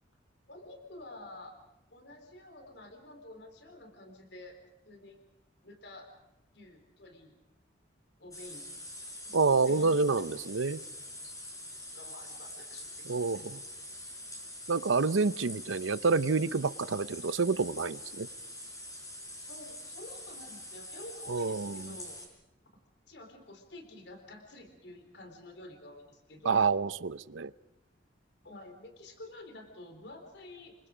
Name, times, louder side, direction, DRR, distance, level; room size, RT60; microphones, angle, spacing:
voice 1, 0.5-1.5 1.9-4.6 4.8-5.2 5.6-6.1 6.5-7.3 8.2-8.7 9.2-10.2 11.2-11.3 11.9-13.6 19.3-22.2 23.1-26.7 28.4-30.9, left 1 dB, 60° left, 6 dB, 3.7 m, -49 dB
sound 1, 8.3-22.3, left 1 dB, 15° left, 6.0 m, -45 dB
voice 2, 9.3-10.8 13.1-13.6 14.7-18.3 21.3-21.8 26.4-27.5, right 4 dB, 90° right, 16 dB, 0.7 m, -28 dB
28.5 x 24.0 x 5.1 m, 0.91 s
head